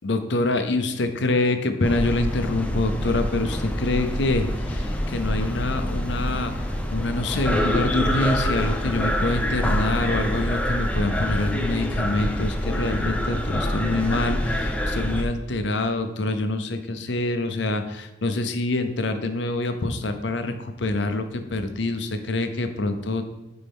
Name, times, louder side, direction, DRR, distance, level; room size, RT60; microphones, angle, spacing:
voice 1, 0.0-23.2, left 2 dB, 70° left, 7 dB, 0.7 m, -26 dB
sound 1, 1.8-15.2, equal, 5° left, 0.6 m, -26 dB
9.5 x 4.4 x 3.6 m, 1.0 s
head